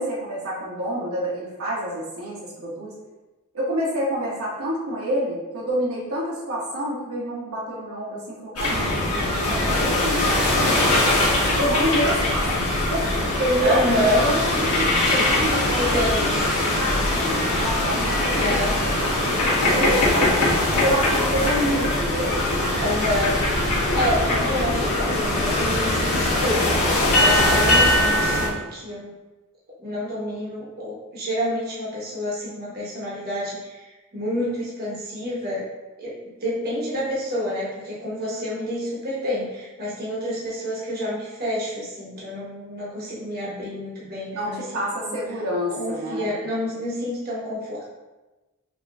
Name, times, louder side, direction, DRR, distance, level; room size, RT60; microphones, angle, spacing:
voice 1, 0.0-2.9 3.5-10.9 11.6-12.6 12.9-13.1 13.4-13.8 14.2-16.4 16.8-20.5 20.8-22.4 44.3-46.3, equal, 70° right, -6 dB, 1.3 m, -28 dB
sound 1, 8.6-28.5, left 1 dB, 85° left, 1.4 m, -21 dB
voice 2, 13.6-14.3 15.1-15.4 15.7-16.3 18.4-18.8 22.8-26.7 27.1-29.1 29.8-35.6 36.0-36.1 36.4-44.6 45.0-45.2 45.7-47.9, left 1 dB, 45° right, -7 dB, 1.2 m, -28 dB
5.9 x 3.0 x 2.6 m, 1.1 s
head